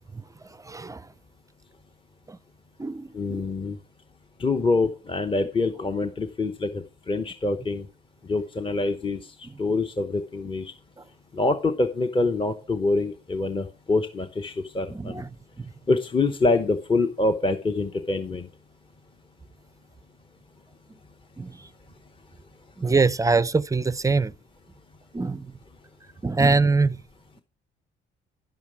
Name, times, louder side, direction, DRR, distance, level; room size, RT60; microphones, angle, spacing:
voice 1, 0.6-1.0 2.3-2.4 2.8-3.4 14.9-15.3 15.6-15.7 21.4-21.6 22.8-24.3 25.1-25.5 26.2-27.0, right 4 dB, 15° right, 0.4 m, -23 dB
voice 2, 3.1-3.8 4.4-7.9 8.3-9.2 9.6-10.7 11.3-15.2 15.9-18.5, left 3 dB, 25° left, 0.9 m, -25 dB
10.5 x 7.2 x 4.8 m
cardioid pair, 90°, 20 cm